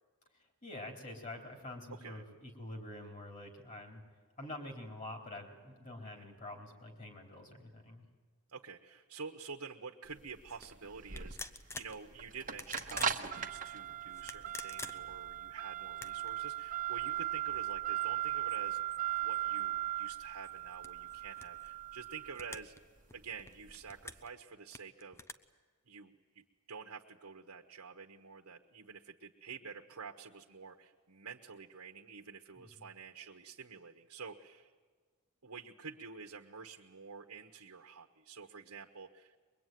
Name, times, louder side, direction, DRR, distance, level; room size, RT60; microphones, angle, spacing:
voice 1, 0.6-4.0 4.4-8.0 32.6-32.9, left 1 dB, 35° left, 3 dB, 3.9 m, -47 dB
voice 2, 1.9-2.2 6.0-6.3 8.5-22.8 23.1-25.2 25.9-34.7 35.4-39.3, right 5 dB, 80° right, 3 dB, 1.2 m, -49 dB
sound 1, 10.1-24.2, right 12 dB, 40° right, 1.3 m, -38 dB
sound 2, 10.5-10.7 11.1-12.0 12.5-13.2 14.1-15.3 15.9-16.3 17.0-17.1 17.5-19.7 20.1-21.7 22.3-22.8 23.1-24.3 24.7-25.3, left 2 dB, 10° left, 0.7 m, -48 dB
22.5 x 22.5 x 9.4 m, 1.5 s
head